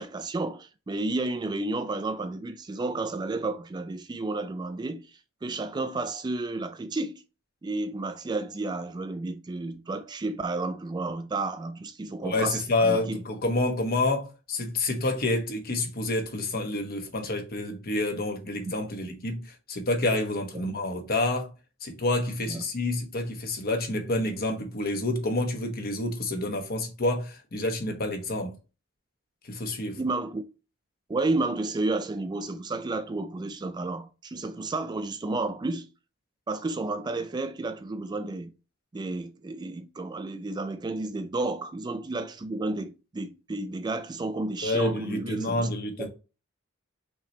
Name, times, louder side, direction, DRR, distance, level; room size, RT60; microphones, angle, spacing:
voice 1, 0.0-5.0 5.4-7.2 7.6-13.2 20.5-20.7 22.5-22.6 30.0-30.4 31.1-35.9 36.5-38.5 38.9-45.7 46.0-46.1, right 2 dB, 20° right, 0.3 m, -31 dB
voice 2, 12.2-21.5 21.8-28.5 29.4-30.0 44.6-46.1, left 2 dB, 45° left, 1.0 m, -28 dB
5.7 x 3.2 x 2.8 m
head